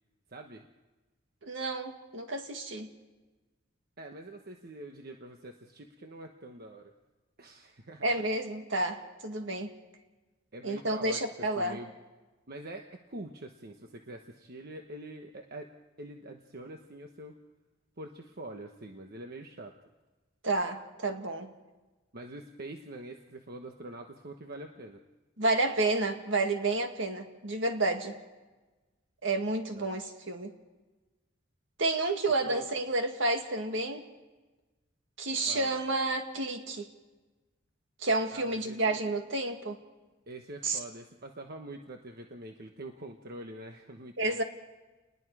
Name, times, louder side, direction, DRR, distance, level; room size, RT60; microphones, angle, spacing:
voice 1, 0.3-0.7 4.0-6.9 7.4-8.0 10.5-11.9 12.5-15.7 16.0-17.4 18.0-19.7 22.1-25.0 29.7-29.9 32.4-32.7 35.5-35.8 38.3-39.0 40.3-44.4, right 2 dB, 50° right, 3 dB, 1.2 m, -45 dB
voice 2, 1.4-2.9 8.0-9.7 10.6-11.8 20.4-21.5 25.4-28.2 29.2-30.5 31.8-34.0 35.2-36.9 38.0-39.8 40.6-40.8 44.2-44.4, right 2 dB, 70° right, 5 dB, 2.1 m, -30 dB
29.5 x 20.5 x 4.9 m, 1.2 s
head